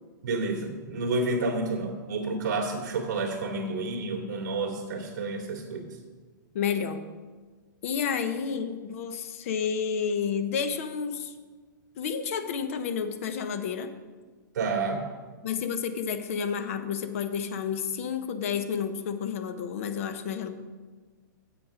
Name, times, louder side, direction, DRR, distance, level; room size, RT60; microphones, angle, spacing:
voice 1, 0.2-6.0 14.5-15.1, right 3 dB, 55° right, 0 dB, 2.3 m, -30 dB
voice 2, 6.5-7.1 7.8-11.3 12.0-13.9 15.4-20.5, left 7 dB, 40° left, 10 dB, 0.8 m, -30 dB
8.8 x 8.0 x 5.0 m, 1.4 s
hypercardioid pair, 170°, 11 cm